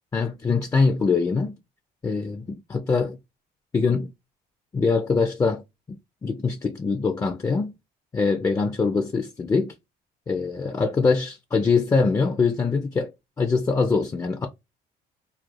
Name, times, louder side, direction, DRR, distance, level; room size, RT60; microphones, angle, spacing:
voice 1, 0.1-1.6 2.0-3.2 3.7-4.1 4.7-5.6 5.9-7.8 8.1-9.7 10.3-13.1 13.4-14.5, left 4 dB, 20° left, 0.3 m, -23 dB
2.4 x 2.0 x 3.0 m
cardioid pair, 110°, 17 cm